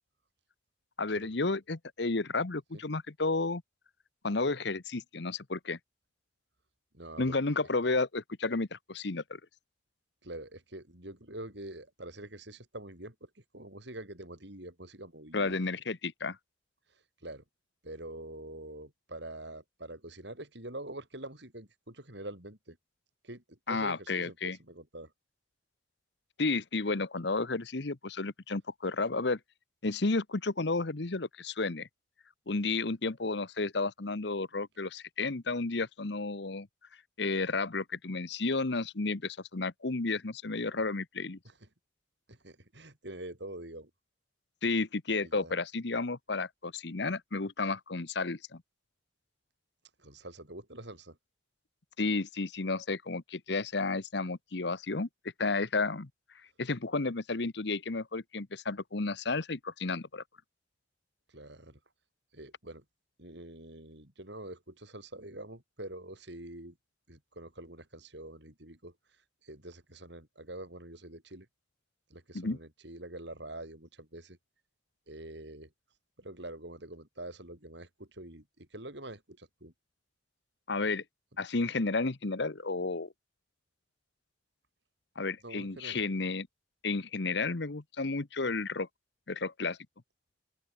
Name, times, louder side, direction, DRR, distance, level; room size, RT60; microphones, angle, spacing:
voice 1, 1.0-3.6 4.2-5.8 7.2-9.4 15.3-16.4 23.7-24.6 26.4-29.4 29.8-31.9 32.5-36.7 37.2-41.4 44.6-48.6 52.0-55.1 55.4-56.1 56.6-60.2 72.3-72.6 80.7-81.0 81.4-83.1 85.2-86.5 86.8-88.9 89.3-89.8, left 3 dB, 60° left, 1.0 m, -32 dB
voice 2, 6.9-7.3 7.8-7.9 10.2-15.6 16.9-17.4 17.8-22.8 23.2-25.1 41.4-41.7 42.3-43.9 45.2-45.5 50.0-51.2 61.3-61.8 62.3-62.8 63.2-66.8 67.1-68.9 69.4-71.5 72.1-74.4 75.1-75.7 76.2-79.7 85.4-86.1, right 1 dB, 60° right, 6.0 m, -45 dB
open air
head